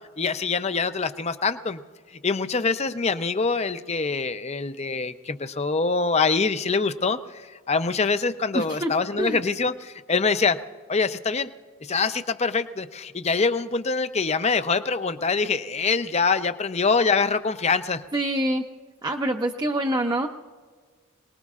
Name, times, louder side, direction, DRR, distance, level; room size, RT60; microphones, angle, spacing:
voice 1, 0.2-1.8 2.2-10.6 10.9-11.5 11.8-18.0, left 4 dB, 30° left, 11 dB, 0.6 m, -24 dB
voice 2, 8.5-8.9 9.2-9.4 18.1-18.6 19.0-20.3, right 1 dB, 20° right, 3 dB, 0.5 m, -25 dB
27.0 x 19.5 x 2.4 m, 1.5 s
head